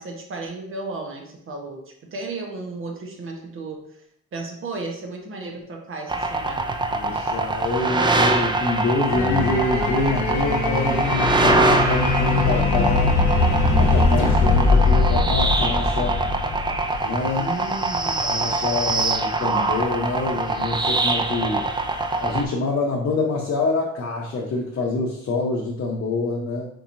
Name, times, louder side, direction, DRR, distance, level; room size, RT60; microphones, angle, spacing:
voice 1, 0.0-4.0 4.3-6.7 17.3-18.2, right 3 dB, 45° right, 1 dB, 0.9 m, -34 dB
sound 1, 6.1-22.4, right 2 dB, 15° right, 0.3 m, -24 dB
voice 2, 6.9-13.2 13.8-16.2 17.0-17.5 18.2-21.7 22.2-26.7, left 3 dB, 50° left, -2 dB, 0.7 m, -26 dB
sound 2, 9.1-17.0, left 3 dB, 75° left, 0.9 m, -21 dB
4.6 x 2.8 x 2.6 m, 0.70 s
cardioid pair, 90°, 30 cm